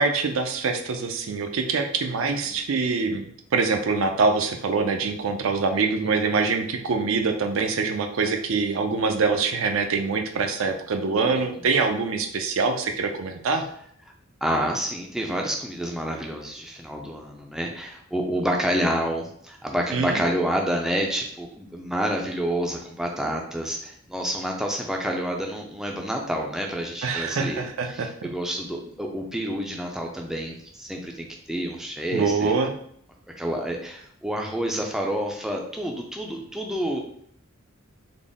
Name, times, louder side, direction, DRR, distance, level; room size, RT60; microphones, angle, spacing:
voice 1, 0.0-3.3 3.5-13.7 19.9-20.2 27.0-28.1 32.1-32.7, right 4 dB, 70° right, 5 dB, 0.5 m, -24 dB
voice 2, 14.4-32.5 33.4-37.0, equal, ahead, 0 dB, 0.4 m, -28 dB
3.8 x 2.0 x 3.5 m, 0.65 s
head